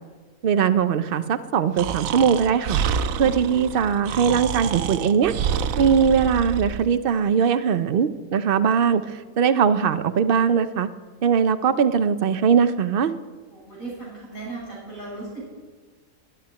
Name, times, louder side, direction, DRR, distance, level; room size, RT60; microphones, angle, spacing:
voice 1, 0.4-2.8 3.2-5.3 5.8-10.9 11.2-13.1, right 7 dB, 50° right, 11 dB, 0.8 m, -20 dB
Breathing, 1.8-6.9, right 7 dB, 85° right, 1.1 m, -27 dB
voice 2, 13.5-15.4, right 3 dB, 85° left, -4 dB, 7.2 m, -36 dB
12.5 x 10.5 x 9.1 m, 1.4 s
omnidirectional pair, 1.4 m